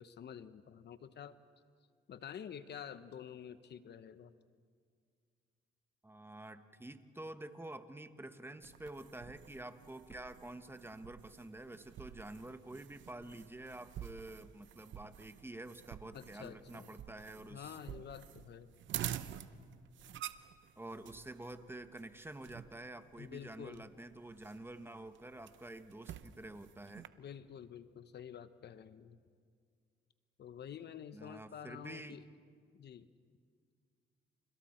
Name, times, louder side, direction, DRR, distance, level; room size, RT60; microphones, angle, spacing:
voice 1, 0.0-1.3 2.1-4.3 16.1-16.9 17.5-18.7 23.2-23.8 27.2-29.2 30.4-32.2 32.7-33.1, left 8 dB, 60° left, 12 dB, 0.9 m, -49 dB
voice 2, 6.0-17.7 20.8-27.1 31.1-32.2, right 1 dB, 10° right, 9 dB, 1.2 m, -48 dB
sound 1, 8.6-27.1, right 11 dB, 70° right, 0.8 m, -49 dB
29.5 x 28.0 x 4.4 m, 2.1 s
cardioid pair, 90°, 20 cm